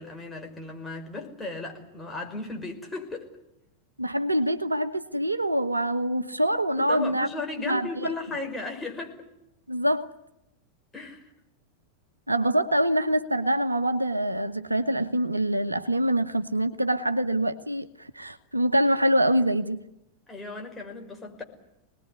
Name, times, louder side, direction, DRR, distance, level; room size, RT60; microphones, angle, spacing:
voice 1, 0.0-3.3 6.8-9.2 10.9-11.3 20.3-21.4, left 3 dB, 10° left, 5.5 m, -36 dB
voice 2, 4.0-7.3 7.7-8.1 9.7-10.1 12.3-19.8, right 1 dB, 85° right, 1.2 m, -25 dB
25.5 x 20.0 x 9.7 m
figure-of-eight pair, 90°, 0 cm